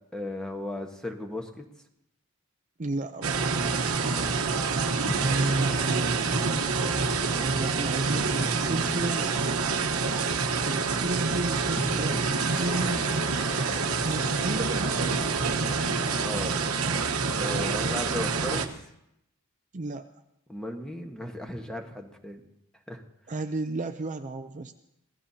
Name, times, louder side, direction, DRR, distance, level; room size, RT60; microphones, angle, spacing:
voice 1, 0.1-1.6 4.4-4.9 16.2-16.6 17.3-18.8 20.5-22.4 22.9-23.0, left 1 dB, 5° left, 2 dB, 1.3 m, -36 dB
voice 2, 2.8-3.6 5.1-6.5 7.4-9.4 10.6-13.1 14.0-15.2 19.7-20.1 23.3-24.7, right 2 dB, 35° right, 7 dB, 0.5 m, -32 dB
sound 1, 3.2-18.7, right 4 dB, 80° right, 1.1 m, -27 dB
sound 2, 5.1-11.0 11.8-16.3, left 1 dB, 25° left, 1.0 m, -42 dB
25.0 x 16.5 x 2.8 m, 0.81 s
head